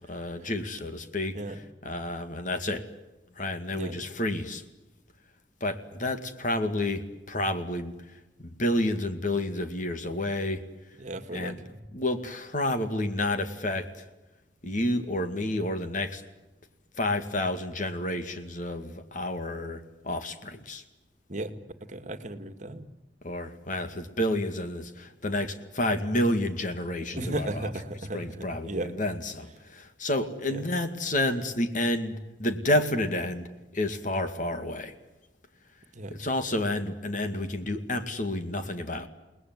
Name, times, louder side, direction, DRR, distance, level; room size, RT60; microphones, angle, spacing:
voice 1, 0.0-2.9 3.3-4.6 5.6-11.0 11.3-11.6 11.9-14.1 14.6-16.2 16.9-20.8 23.2-27.7 28.1-34.9 36.1-39.1, left 1 dB, 45° left, 2.2 m, -30 dB
voice 2, 11.0-11.8 21.3-21.5 21.8-22.9 27.2-28.9 30.5-30.6 36.0-36.2, right 1 dB, 40° right, 2.0 m, -35 dB
29.5 x 20.0 x 9.5 m
head